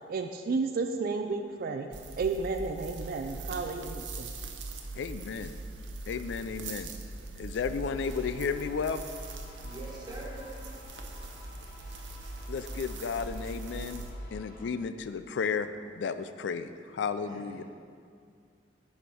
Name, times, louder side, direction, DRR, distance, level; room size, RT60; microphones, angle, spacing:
voice 1, 0.1-1.9 2.2-4.3, right 4 dB, 55° right, 5 dB, 0.4 m, -32 dB
sound 1, 1.9-14.1, right 2 dB, 90° right, 0.8 m, -41 dB
voice 2, 5.0-5.5 6.1-6.9 7.4-9.0 12.5-14.0 14.3-15.7 16.0-17.6, left 5 dB, 75° left, 11 dB, 0.3 m, -33 dB
sound 2, 7.9-14.7, left 2 dB, 50° left, 1.2 m, -54 dB
voice 3, 9.6-10.6 17.3-17.6, right 2 dB, 25° right, -3 dB, 1.4 m, -44 dB
10.0 x 4.3 x 4.6 m, 2.2 s
head